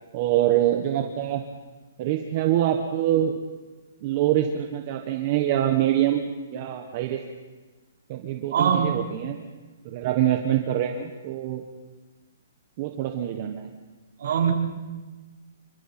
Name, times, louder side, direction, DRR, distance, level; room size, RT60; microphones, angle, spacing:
voice 1, 0.1-1.4 2.0-3.3 4.0-6.2 6.5-7.2 8.1-9.4 9.8-11.6 12.8-13.7, right 12 dB, 30° right, 4 dB, 1.3 m, -24 dB
voice 2, 8.5-9.1 14.2-14.5, right 7 dB, 55° right, -2 dB, 4.4 m, -22 dB
28.0 x 24.5 x 4.4 m, 1.3 s
hypercardioid pair, 170°, 0 cm